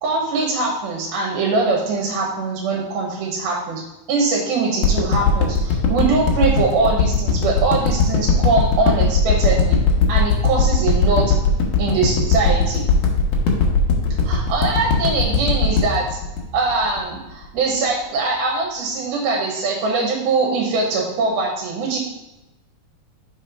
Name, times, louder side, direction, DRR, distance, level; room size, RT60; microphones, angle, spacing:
voice 1, 0.0-3.8 4.1-9.8 10.1-11.3 11.8-12.8 14.2-16.2 16.5-22.0, right 3 dB, 75° right, -1 dB, 2.9 m, -22 dB
sound 1, 4.8-17.2 17.6-17.7, left 4 dB, 70° left, 2.1 m, -18 dB
6.2 x 4.3 x 5.0 m, 0.96 s
omnidirectional pair, 4.4 m